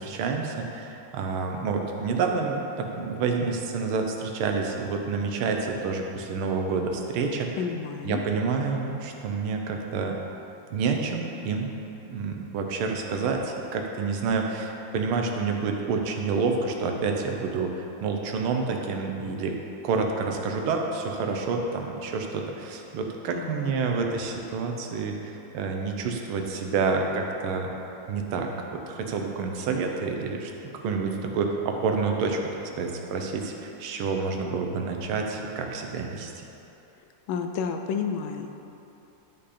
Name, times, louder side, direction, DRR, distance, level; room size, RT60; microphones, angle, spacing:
voice 1, 0.0-7.6 8.0-10.2 10.7-11.7 12.0-19.6 19.8-27.7 28.1-30.5 30.8-32.4 32.8-36.4, right 4 dB, 85° right, 2 dB, 1.7 m, -28 dB
voice 2, 7.6-8.2 23.3-23.7 37.3-38.6, left 6 dB, 80° left, 5 dB, 1.3 m, -31 dB
11.5 x 5.3 x 4.2 m, 3.0 s
omnidirectional pair, 2.3 m